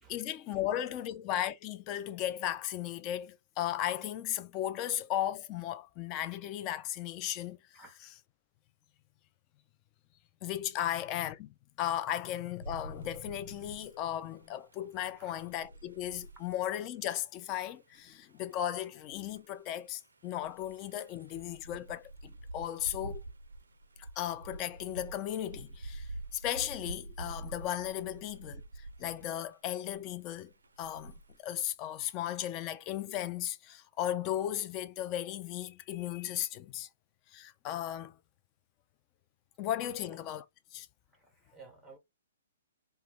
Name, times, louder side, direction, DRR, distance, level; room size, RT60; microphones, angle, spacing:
voice 1, 0.1-7.8 10.4-23.2 24.2-30.5 30.8-31.1 31.4-36.9 37.3-38.1 39.6-40.4 40.7-40.9, left 12 dB, 30° left, 0.3 m, -36 dB
sound 1, 12.6-14.5 14.7-17.1 17.6-17.7 17.9-18.1 18.4-18.5 19.1-29.5 29.9-30.1 30.5-31.4, right 2 dB, 80° right, 0.4 m, -47 dB
voice 2, 41.1-42.0, right 4 dB, 5° right, 0.7 m, -53 dB
2.2 x 2.1 x 3.3 m
figure-of-eight pair, 125°, 0 cm